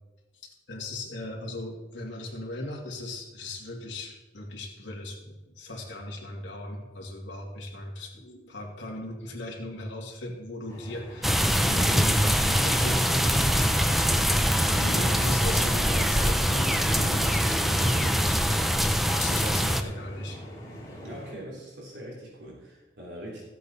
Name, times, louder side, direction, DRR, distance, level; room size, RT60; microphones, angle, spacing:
voice 1, 0.7-20.4, left 1 dB, 80° left, -1 dB, 2.4 m, -37 dB
sound 1, 10.7-21.3, equal, 20° left, 2.7 m, -41 dB
sound 2, 11.2-19.8, equal, ahead, 0.4 m, -23 dB
voice 2, 21.0-23.4, right 1 dB, 65° right, -4 dB, 3.4 m, -41 dB
14.0 x 8.3 x 4.2 m, 1.1 s
head